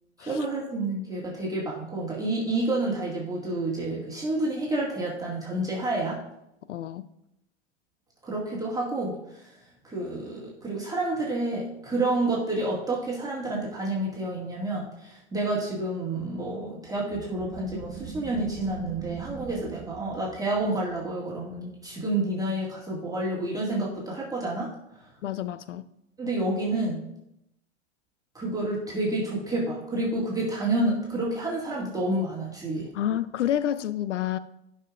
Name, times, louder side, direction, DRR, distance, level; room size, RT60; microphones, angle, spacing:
voice 1, 0.2-6.2 8.2-9.5 9.8-24.7 24.9-25.1 26.2-27.0 28.3-32.9, right 2 dB, 10° right, 2.0 m, -29 dB
voice 2, 6.7-7.0 25.2-25.8 32.9-34.4, left 11 dB, 75° left, 0.6 m, -28 dB
sound 1, 17.0-22.3, right 8 dB, 30° right, 0.5 m, -42 dB
12.0 x 5.7 x 2.5 m
hypercardioid pair, 100°, 36 cm